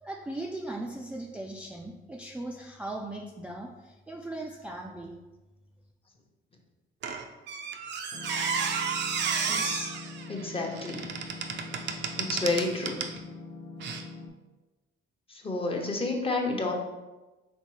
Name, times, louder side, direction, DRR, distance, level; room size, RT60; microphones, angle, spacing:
voice 1, 0.0-5.2, right 2 dB, 5° right, -1 dB, 0.3 m, -38 dB
Squeak, 7.0-13.2 13.8-14.0, right 6 dB, 60° right, 0.5 m, -32 dB
sound 1, 8.1-14.3, left 3 dB, 60° left, 0.6 m, -43 dB
voice 2, 9.5-9.9 10.3-11.0 12.2-13.0 15.3-16.7, left 3 dB, 30° left, 1 dB, 0.9 m, -30 dB
4.4 x 3.2 x 3.1 m, 1.1 s
cardioid pair, 90°, 20 cm